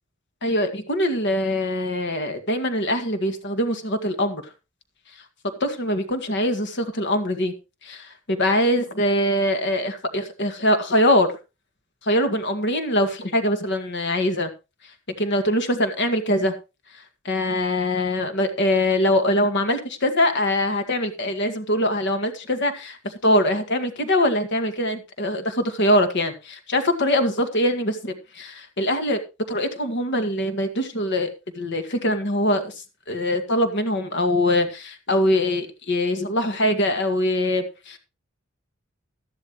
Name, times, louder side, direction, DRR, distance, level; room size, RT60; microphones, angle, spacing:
voice 1, 0.4-4.4 5.6-7.5 7.8-11.3 12.0-14.5 15.2-16.5 16.9-29.2 29.5-31.3 31.5-38.0, left 1 dB, 60° left, 8 dB, 2.0 m, -23 dB
13.0 x 12.0 x 3.1 m, 0.28 s
head